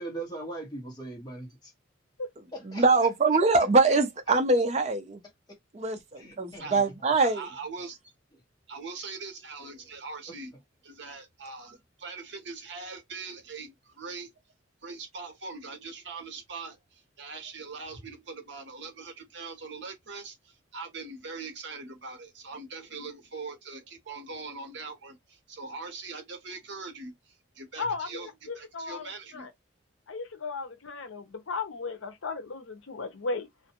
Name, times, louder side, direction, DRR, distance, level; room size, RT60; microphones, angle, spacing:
voice 1, 0.0-1.7 2.5-3.4 6.1-6.9 7.4-7.6 9.6-9.9 10.3-10.4, right 2 dB, 20° left, 1.0 m, -41 dB
voice 2, 2.7-5.2 5.8-7.4, right 3 dB, 35° right, 0.5 m, -23 dB
voice 3, 7.2-8.1 8.7-10.5 10.8-14.3 14.8-28.3 28.5-29.5, right 4 dB, 60° right, 0.8 m, -42 dB
voice 4, 27.8-29.5 30.1-33.5, left 4 dB, 80° left, 0.7 m, -35 dB
2.5 x 2.1 x 2.8 m
head